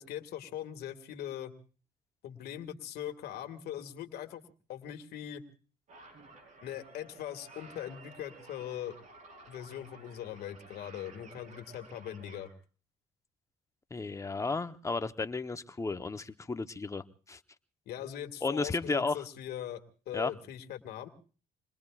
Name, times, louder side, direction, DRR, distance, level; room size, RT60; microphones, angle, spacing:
voice 1, 0.0-1.5 2.2-4.4 4.7-5.4 6.6-9.0 9.5-12.5 17.9-21.1, left 11 dB, 70° left, 6 dB, 2.1 m, -41 dB
sound 1, 5.9-12.5, right 3 dB, 45° right, 4.8 m, -54 dB
voice 2, 13.9-17.4 18.4-19.2 20.1-20.3, left 3 dB, 20° left, 10 dB, 0.9 m, -33 dB
28.5 x 21.5 x 2.4 m, 0.39 s
cardioid pair, 110°, 17 cm